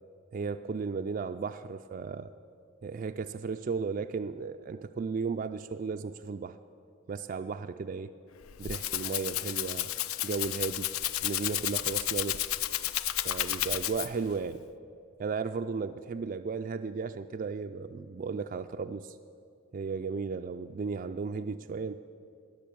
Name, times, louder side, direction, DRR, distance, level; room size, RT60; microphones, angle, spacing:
voice 1, 0.3-2.3 2.8-6.6 7.1-8.1 8.6-9.9 10.2-10.9 11.2-12.4 13.2-14.6 15.2-19.2 19.7-22.0, right 5 dB, 40° right, 8 dB, 0.3 m, -35 dB
Rattle (instrument), 8.4-14.3, left 13 dB, 85° left, 0.5 m, -32 dB
19.0 x 6.5 x 8.6 m, 2.5 s
head